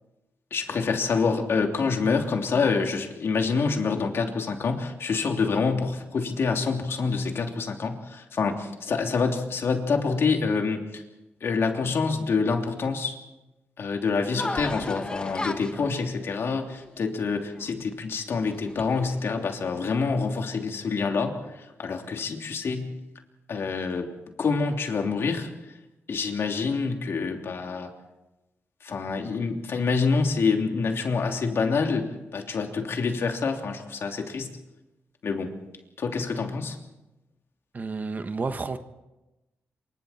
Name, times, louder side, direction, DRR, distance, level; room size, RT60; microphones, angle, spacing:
voice 1, 0.5-11.0 11.4-13.2 13.8-21.4 21.8-23.0 23.5-24.1 24.4-25.5 26.1-27.9 28.8-34.5 35.2-35.5 36.0-36.8, left 4 dB, 60° left, 3.1 m, -26 dB
sound 1, 14.4-17.9 18.4-19.3, left 2 dB, 20° left, 1.4 m, -35 dB
voice 2, 37.7-38.8, right 4 dB, 40° right, 1.4 m, -30 dB
27.0 x 24.5 x 4.4 m
cardioid pair, 95°, 5 cm